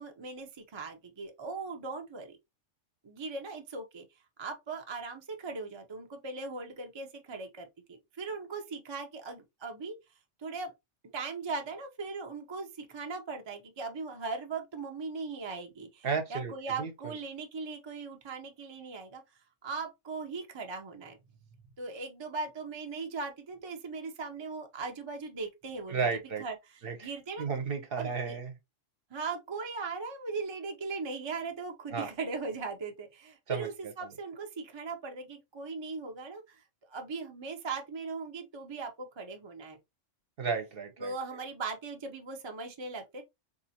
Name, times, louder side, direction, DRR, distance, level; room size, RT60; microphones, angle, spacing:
voice 1, 0.0-2.4 3.0-4.1 4.4-10.0 10.4-10.7 11.1-19.2 19.6-21.2 21.8-26.1 26.4-27.5 28.0-28.4 29.1-36.6 36.9-39.8 41.0-43.2, right 4 dB, 30° right, 0.5 m, -39 dB
voice 2, 16.0-16.5 16.8-17.2 25.9-26.4 26.8-27.1 27.4-28.5 31.9-32.1 33.5-34.1 40.4-41.1, right 5 dB, 55° right, 0.9 m, -33 dB
4.1 x 2.7 x 2.7 m
omnidirectional pair, 1.3 m